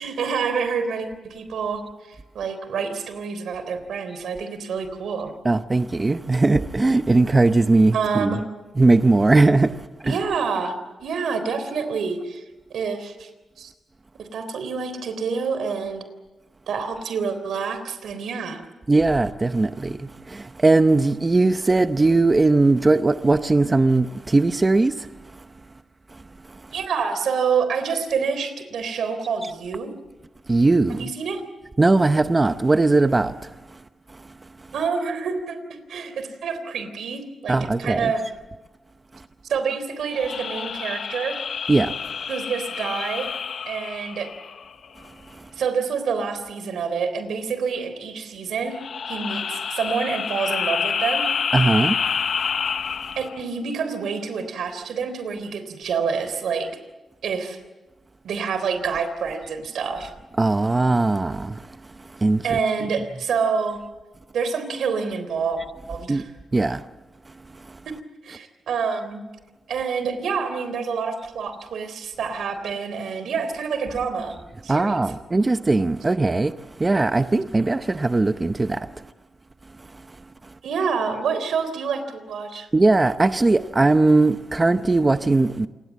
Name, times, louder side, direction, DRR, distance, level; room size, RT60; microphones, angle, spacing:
voice 1, 0.0-1.8 2.1-5.3 7.9-8.4 10.0-12.4 12.7-13.3 13.6-13.7 14.2-16.0 16.7-18.6 26.7-29.9 30.9-31.4 34.7-35.6 35.9-38.3 39.5-41.4 42.3-43.3 43.7-44.3 45.6-48.8 49.1-51.3 53.2-56.7 57.2-57.6 58.2-60.1 62.4-63.8 64.3-65.6 65.9-66.3 67.9-68.0 68.2-69.2 69.7-74.4 74.6-75.0 80.6-82.7, right 5 dB, 90° right, 3.6 m, -27 dB
voice 2, 5.4-8.4 8.8-9.7 10.1-10.2 18.9-19.9 20.6-24.1 24.3-24.9 30.5-31.0 31.8-33.3 37.5-38.1 41.7-41.9 51.5-51.9 60.4-61.4 62.2-62.6 66.1-66.2 66.5-66.8 74.7-76.5 76.8-78.5 82.7-85.7, right 3 dB, 25° right, 0.7 m, -19 dB
sound 1, 40.1-44.9 48.7-53.4, left 6 dB, 60° left, 0.7 m, -28 dB
27.5 x 20.0 x 7.4 m
wide cardioid pair, 115°, 0 cm